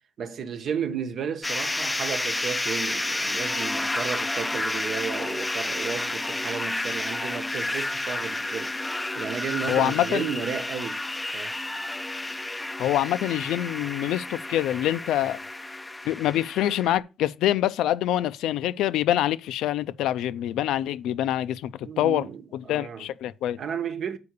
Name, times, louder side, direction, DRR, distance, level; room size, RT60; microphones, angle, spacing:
voice 1, 0.2-8.8 9.1-11.0 11.3-11.6 21.8-23.1 23.6-24.2, right 7 dB, 60° right, 1.1 m, -33 dB
sound 1, 1.4-17.0, left 2 dB, 15° left, 0.4 m, -31 dB
voice 2, 9.7-10.3 12.8-15.4 16.1-22.3 22.5-23.6, left 12 dB, 85° left, 0.5 m, -25 dB
6.9 x 4.7 x 6.5 m
cardioid pair, 90°, 0 cm